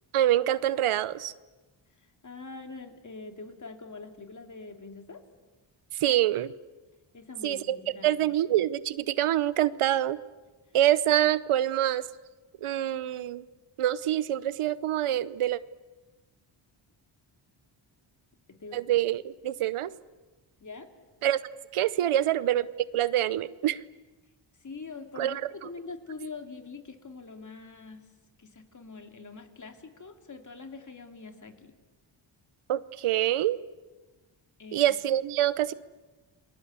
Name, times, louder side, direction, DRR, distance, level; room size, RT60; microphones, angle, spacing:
voice 1, 0.1-1.3 6.0-6.5 7.4-7.8 8.0-10.2 10.7-12.1 12.6-13.4 13.8-15.6 18.7-19.9 21.2-21.4 21.7-22.7 22.9-23.8 25.2-25.3 32.7-33.6 34.7-35.7, right 12 dB, 90° right, 17 dB, 0.9 m, -25 dB
voice 2, 2.2-5.2 7.1-8.2 18.5-18.9 20.6-20.9 24.6-28.1 28.4-31.7 34.6-34.9, left 4 dB, 35° left, 5 dB, 3.0 m, -44 dB
28.5 x 21.5 x 8.2 m, 1.2 s
cardioid pair, 100°, 49 cm